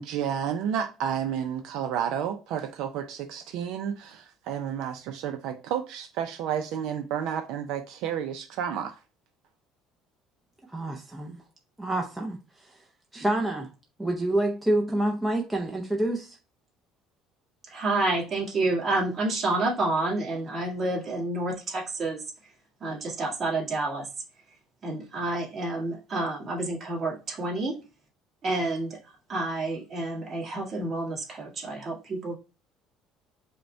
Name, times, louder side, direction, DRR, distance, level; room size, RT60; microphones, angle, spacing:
voice 1, 0.0-9.0, right 8 dB, 70° right, 0.4 m, -31 dB
voice 2, 10.7-11.4 11.8-12.4 13.1-13.7 14.0-16.4, right 1 dB, 5° right, 0.5 m, -27 dB
voice 3, 17.7-22.2 22.8-24.1 24.8-27.8 28.4-32.4, right 2 dB, 30° right, 1.6 m, -29 dB
5.1 x 2.2 x 4.4 m
cardioid pair, 150°, 0 cm